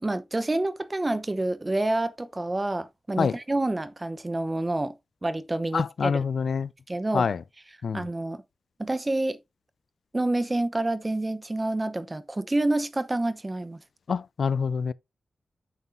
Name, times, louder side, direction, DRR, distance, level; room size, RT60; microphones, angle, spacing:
voice 1, 0.0-4.9 5.2-6.2 6.9-7.2 7.9-8.4 8.8-9.4 10.1-13.8, right 2 dB, 20° right, 0.8 m, -28 dB
voice 2, 5.7-6.7 7.1-7.4 7.8-8.0 14.1-14.9, left 6 dB, 70° left, 0.4 m, -26 dB
9.1 x 7.9 x 2.6 m
wide cardioid pair, 140°, 0 cm